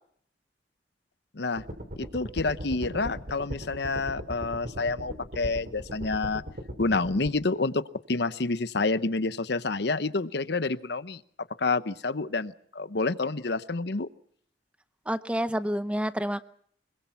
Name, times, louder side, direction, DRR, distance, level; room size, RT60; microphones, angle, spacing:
sound 1, 1.6-7.3, equal, 50° right, 3.5 m, -38 dB
voice 1, 2.0-6.4 6.8-11.2 11.6-14.1, left 3 dB, 60° left, 14 dB, 0.9 m, -28 dB
voice 2, 15.1-16.4, equal, 5° right, 12 dB, 0.8 m, -28 dB
25.0 x 22.0 x 5.9 m, 0.63 s
head